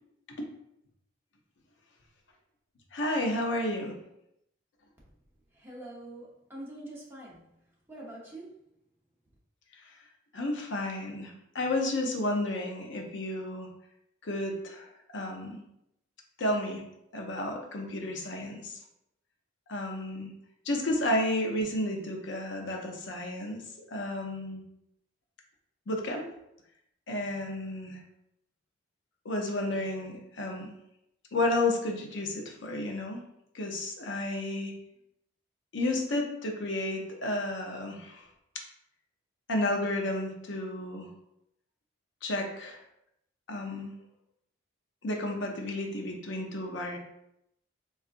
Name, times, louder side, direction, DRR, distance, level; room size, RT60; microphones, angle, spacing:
voice 1, 2.9-3.9 9.8-9.9 10.3-13.7 14.2-15.6 16.4-16.8 17.1-18.8 19.7-20.3 20.6-23.6 23.9-24.6 25.9-26.3 27.1-28.0 29.2-30.7 31.3-33.2 33.5-34.7 35.7-38.3 39.5-41.1 42.2-42.8 43.5-43.9 45.0-47.0, left 1 dB, 60° left, 2 dB, 0.6 m, -32 dB
voice 2, 5.5-8.6, right 1 dB, 10° right, -6 dB, 0.7 m, -45 dB
3.7 x 2.4 x 2.4 m, 0.80 s
head